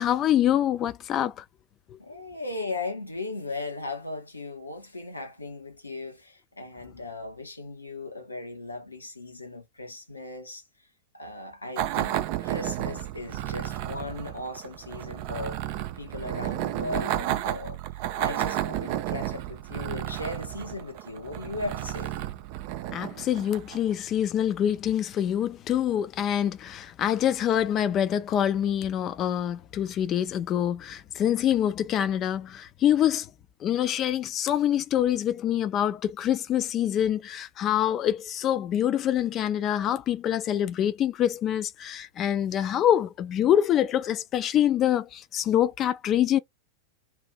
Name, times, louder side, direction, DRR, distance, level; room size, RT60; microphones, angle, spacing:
voice 1, 0.0-1.4 1.9-2.0 22.9-33.3 33.6-46.4, left 10 dB, 30° left, 0.5 m, -25 dB
voice 2, 2.0-10.9 11.1-22.1, left 2 dB, 80° left, 1.0 m, -37 dB
sound 1, 11.8-23.9, right 13 dB, 45° right, 0.4 m, -32 dB
2.8 x 2.5 x 3.5 m
figure-of-eight pair, 90°, 0 cm